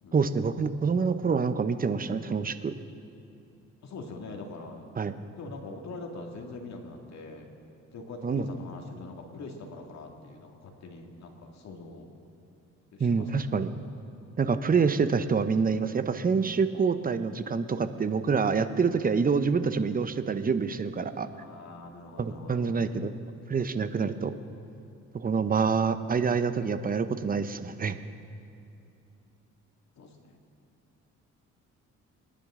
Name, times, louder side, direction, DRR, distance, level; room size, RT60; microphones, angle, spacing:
voice 1, 0.1-2.7 5.0-5.1 8.2-8.5 13.0-13.7 14.4-21.3 22.2-23.1 23.5-24.3 25.1-28.0, right 5 dB, 30° right, 11 dB, 0.7 m, -26 dB
voice 2, 3.8-4.9 5.4-7.5 7.9-12.1 12.9-13.5 21.3-22.7 30.0-30.4, left 3 dB, 65° left, 2 dB, 2.2 m, -43 dB
25.5 x 10.5 x 3.7 m, 2.6 s
cardioid pair, 90°, 30 cm